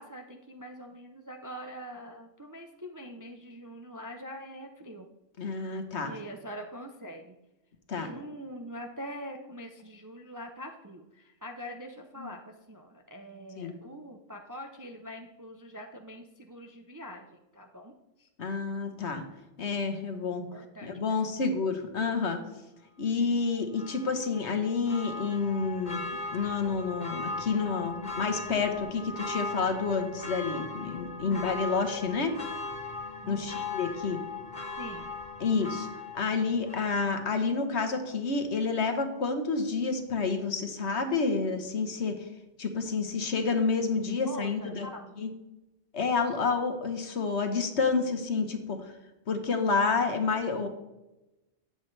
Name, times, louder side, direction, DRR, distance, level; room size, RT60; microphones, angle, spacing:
voice 1, 0.0-5.1 6.0-7.4 7.9-17.9 18.2-18.3 20.5-21.5 31.2-31.6 33.2-33.7 34.8-35.2 44.0-45.1, equal, 25° right, 3 dB, 0.5 m, -44 dB
voice 2, 5.4-6.1 7.9-8.1 12.2-12.3 13.6-13.7 18.4-19.2 19.6-20.4 20.8-22.4 23.0-26.0 26.3-32.3 33.3-34.2 35.4-35.9 36.1-42.1 42.6-44.9 45.2-45.3 45.9-48.9 49.3-50.7, left 4 dB, 60° left, 6 dB, 1.3 m, -29 dB
Church bell, 23.7-37.4 37.8-37.9, left 3 dB, 40° left, 1.1 m, -39 dB
11.5 x 8.0 x 3.3 m, 0.98 s
omnidirectional pair, 1.3 m